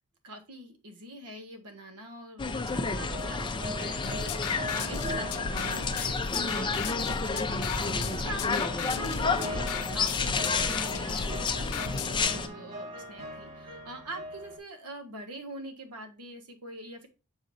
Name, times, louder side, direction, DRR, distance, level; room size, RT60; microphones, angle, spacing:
voice 1, 0.2-17.1, right 1 dB, 85° right, 5 dB, 1.5 m, -44 dB
sound 1, 2.4-12.5, left 4 dB, 20° left, 0.6 m, -30 dB
sound 2, 3.1-14.6, right 1 dB, 35° right, 2.5 m, -42 dB
sound 3, 4.0-12.2, left 5 dB, 80° left, 0.7 m, -36 dB
7.0 x 5.2 x 2.6 m, 0.30 s
head